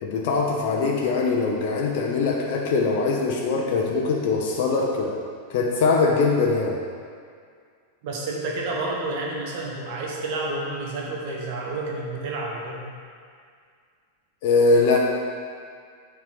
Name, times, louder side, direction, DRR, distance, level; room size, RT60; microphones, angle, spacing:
voice 1, 0.0-5.2 5.5-6.8 14.4-15.0, left 4 dB, 50° left, 0 dB, 0.8 m, -22 dB
voice 2, 8.0-12.9, right 2 dB, 50° right, -2 dB, 1.4 m, -30 dB
7.5 x 4.7 x 5.9 m, 2.1 s
figure-of-eight pair, 90°, 0 cm